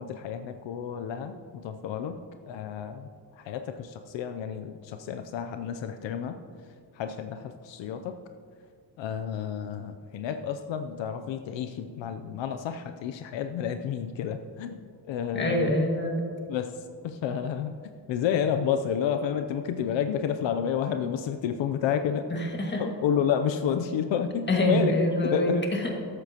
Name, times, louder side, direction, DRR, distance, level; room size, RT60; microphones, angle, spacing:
voice 1, 0.0-2.2 2.5-3.1 3.4-6.4 6.9-8.2 9.0-14.8 15.0-15.8 16.5-16.8 17.0-17.7 18.1-22.3 22.8-25.6, left 8 dB, 75° left, 7 dB, 0.7 m, -30 dB
voice 2, 15.3-16.2 22.3-22.8 24.5-25.9, left 1 dB, 25° left, 0 dB, 1.9 m, -25 dB
14.5 x 12.0 x 2.9 m, 2.2 s
cardioid pair, 135°, 44 cm